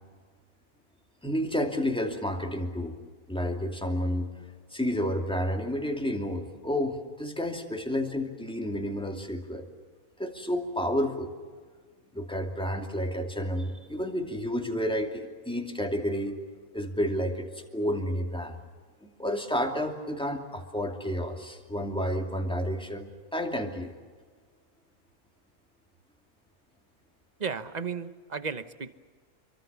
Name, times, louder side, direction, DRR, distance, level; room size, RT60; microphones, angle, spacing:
voice 1, 1.2-2.9 3.3-4.3 4.7-9.7 10.2-11.3 12.1-16.4 16.7-18.6 19.0-23.9, equal, 5° left, 2 dB, 2.6 m, -30 dB
voice 2, 27.4-28.9, right 5 dB, 35° right, 11 dB, 1.1 m, -34 dB
27.5 x 23.5 x 7.1 m, 1.5 s
omnidirectional pair, 1.5 m